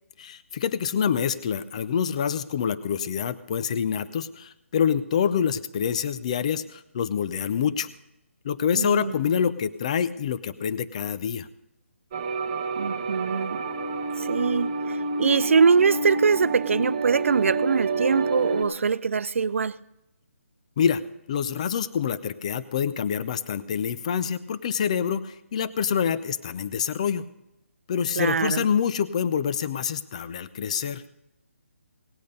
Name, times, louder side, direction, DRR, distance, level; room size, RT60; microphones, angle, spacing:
voice 1, 0.2-7.9 8.4-11.5 20.8-21.0 21.3-27.3 27.9-31.0, left 7 dB, 30° left, 0.5 m, -26 dB
voice 2, 8.7-9.2 12.8-13.7 14.2-19.7 28.2-28.7, right 5 dB, 70° right, 0.5 m, -23 dB
sound 1, 12.1-18.6, right 3 dB, 25° right, 1.1 m, -28 dB
18.0 x 8.6 x 5.4 m
hypercardioid pair, 165°, 7 cm